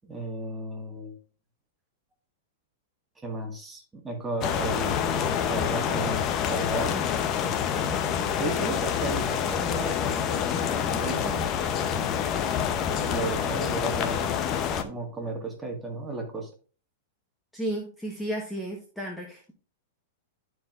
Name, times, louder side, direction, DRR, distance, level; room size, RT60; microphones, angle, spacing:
voice 1, 0.0-1.2 3.2-7.1 8.4-10.2 10.7-11.4 13.0-16.5, right 2 dB, 15° right, 2 dB, 1.7 m, -34 dB
sound 1, 4.4-14.8, left 8 dB, 35° left, 0.7 m, -27 dB
voice 2, 17.5-19.5, right 1 dB, 5° left, -1 dB, 1.2 m, -33 dB
12.0 x 4.6 x 2.5 m, 0.38 s
hypercardioid pair, 125°, 0 cm